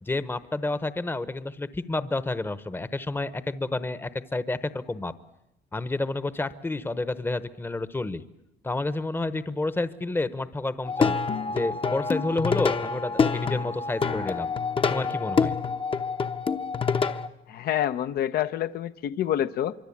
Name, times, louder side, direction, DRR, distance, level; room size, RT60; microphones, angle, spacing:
voice 1, 0.0-5.1 5.7-8.2 8.6-11.2 11.5-14.5 14.9-15.5, left 2 dB, 15° left, 14 dB, 1.0 m, -30 dB
Plucked string instrument, 10.8-17.3, left 5 dB, 30° left, 1.0 m, -26 dB
voice 2, 17.5-19.7, left 11 dB, 65° left, 12 dB, 0.9 m, -27 dB
25.5 x 24.0 x 8.6 m, 0.84 s
cardioid pair, 110°, 17 cm